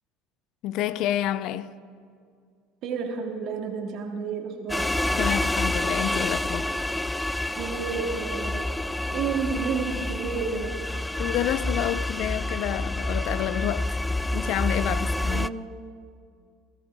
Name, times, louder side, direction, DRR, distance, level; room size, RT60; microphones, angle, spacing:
voice 1, 0.6-1.7 5.1-6.7 11.2-14.0 14.3-15.5, left 12 dB, 60° left, 0.5 m, -29 dB
voice 2, 2.8-4.9 7.6-8.7 9.1-10.7 15.0-15.6, right 5 dB, 55° right, 2.4 m, -31 dB
sound 1, 4.7-15.5, left 1 dB, 5° left, 0.3 m, -28 dB
21.5 x 13.5 x 3.6 m
hypercardioid pair, 85°, 0 cm